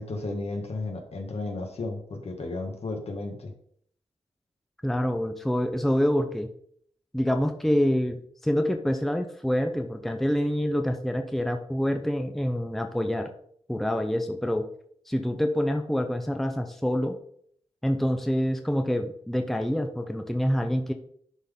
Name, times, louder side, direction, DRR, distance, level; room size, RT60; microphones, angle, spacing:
voice 1, 0.0-3.5, left 2 dB, 60° left, 3 dB, 1.5 m, -33 dB
voice 2, 4.8-6.5 7.1-13.3 13.7-14.6 15.1-17.1 17.8-20.9, equal, ahead, 5 dB, 0.6 m, -26 dB
11.0 x 4.0 x 3.6 m, 0.65 s
wide cardioid pair, 115°, 12 cm